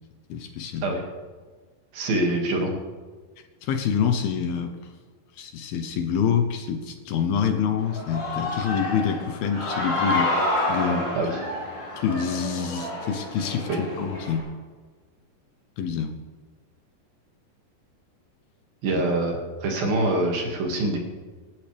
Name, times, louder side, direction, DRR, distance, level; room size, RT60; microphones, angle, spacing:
voice 1, 0.3-1.0 3.6-4.8 5.3-11.1 12.0-14.5 15.8-16.1 18.9-19.0, left 7 dB, 75° left, 7 dB, 2.5 m, -26 dB
voice 2, 1.9-2.7 11.1-11.3 13.7-13.8 18.8-21.0, right 2 dB, 60° right, 1 dB, 3.7 m, -25 dB
Human voice / Cheering, 7.8-14.4, left 2 dB, 30° left, 6.4 m, -29 dB
26.5 x 12.0 x 3.4 m, 1.4 s
omnidirectional pair, 4.8 m